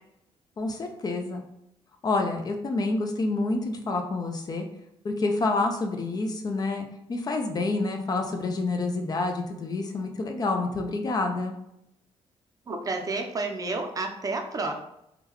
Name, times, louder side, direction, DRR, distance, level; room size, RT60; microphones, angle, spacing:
voice 1, 0.6-1.4 2.0-4.7 5.0-11.5, left 3 dB, 40° left, 4 dB, 0.5 m, -28 dB
voice 2, 12.7-14.7, right 3 dB, 35° right, 4 dB, 0.5 m, -30 dB
3.7 x 2.3 x 3.0 m, 0.80 s
cardioid pair, 115°, 11 cm